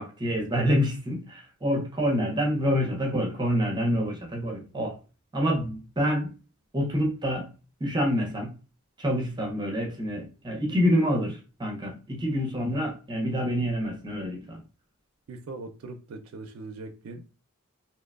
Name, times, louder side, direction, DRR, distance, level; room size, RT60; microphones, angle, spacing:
voice 1, 0.0-4.9 5.3-6.3 6.7-7.5 7.8-8.5 9.0-14.6, equal, 20° right, 1 dB, 0.5 m, -27 dB
voice 2, 15.3-17.3, right 3 dB, 80° right, 4 dB, 0.4 m, -41 dB
2.8 x 2.1 x 2.2 m, 0.33 s
head